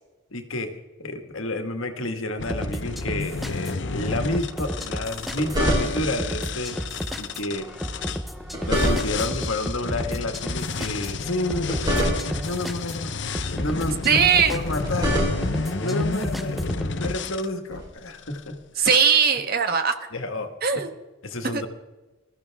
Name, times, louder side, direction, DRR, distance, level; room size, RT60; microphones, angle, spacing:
voice 1, 0.3-0.7 1.0-6.8 7.2-7.7 8.6-13.1 13.5-15.2 15.8-18.9 20.1-20.5 21.2-21.7, left 1 dB, 70° left, 6 dB, 1.8 m, -30 dB
sound 1, 2.4-8.2 8.7-17.5 18.1-18.4 18.8-19.0, left 4 dB, 55° left, 0.8 m, -32 dB
sound 2, 2.5-17.2, equal, ahead, 0.7 m, -33 dB
sound 3, 5.1-6.2 8.2-9.4 11.4-12.6 14.5-15.7 17.7-17.9, equal, 20° right, 4.2 m, -26 dB
voice 2, 14.0-14.6 18.8-19.9 20.6-20.9 21.5-21.7, right 6 dB, 45° right, 7 dB, 1.3 m, -19 dB
22.0 x 14.0 x 3.6 m, 1.1 s
head